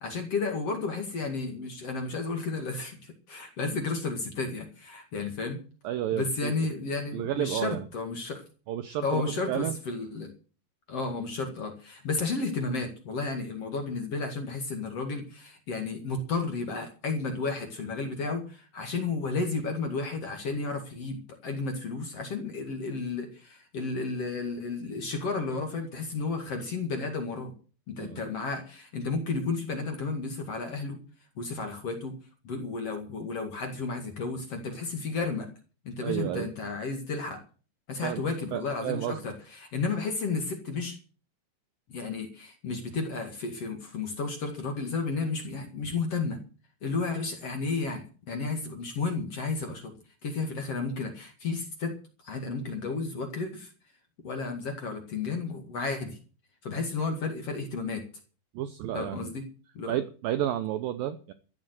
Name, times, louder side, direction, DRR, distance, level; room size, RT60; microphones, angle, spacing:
voice 1, 0.0-5.6 6.1-8.4 9.0-10.3 10.9-27.5 27.9-31.0 31.4-32.1 32.4-35.5 35.8-37.4 37.9-41.0 41.9-46.4 46.8-49.9 50.2-52.0 52.2-53.7 54.2-56.2 56.6-58.0 58.9-59.4 59.7-59.9, left 4 dB, 45° left, 5 dB, 2.3 m, -32 dB
voice 2, 5.8-6.5 7.1-7.8 8.7-9.8 28.0-28.2 36.0-36.5 38.0-38.2 38.5-39.2 58.5-59.3 59.9-61.3, right 11 dB, 90° right, 10 dB, 2.0 m, -31 dB
14.0 x 8.9 x 8.0 m, 0.38 s
omnidirectional pair, 5.3 m